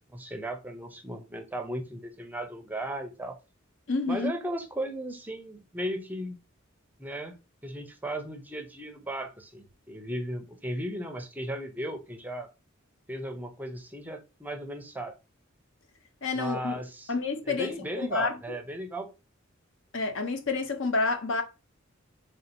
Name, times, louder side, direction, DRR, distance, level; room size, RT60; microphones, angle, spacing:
voice 1, 0.1-3.4 4.1-6.4 7.0-7.4 7.6-12.5 13.1-15.1 16.3-17.1 17.4-19.1, right 1 dB, 10° right, 0.5 m, -36 dB
voice 2, 3.9-4.3 16.2-16.8 17.1-17.7 18.0-18.6 19.9-21.4, left 3 dB, 65° left, 0.7 m, -29 dB
3.4 x 2.8 x 4.1 m
head